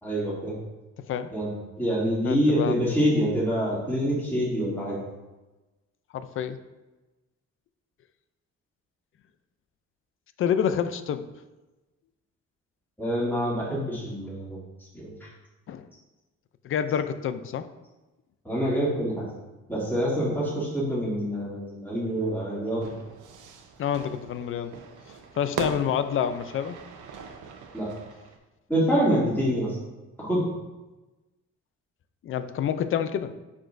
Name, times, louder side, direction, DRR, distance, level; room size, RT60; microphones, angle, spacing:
voice 1, 0.0-0.5 1.3-1.5 1.8-5.0 13.0-14.6 14.9-15.3 18.4-19.3 19.7-22.9 27.7-27.9 28.7-29.8 30.2-30.5, equal, 5° left, -7 dB, 2.5 m, -26 dB
voice 2, 2.2-2.8 6.1-6.6 10.4-11.3 15.7-15.9 16.6-17.7 23.8-24.7 25.4-26.8 32.2-33.3, left 8 dB, 45° left, 11 dB, 0.5 m, -28 dB
Fire / Fireworks, 22.8-28.4, right 5 dB, 80° right, 1.0 m, -40 dB
9.5 x 6.1 x 2.6 m, 1.1 s
cardioid pair, 155°, 30 cm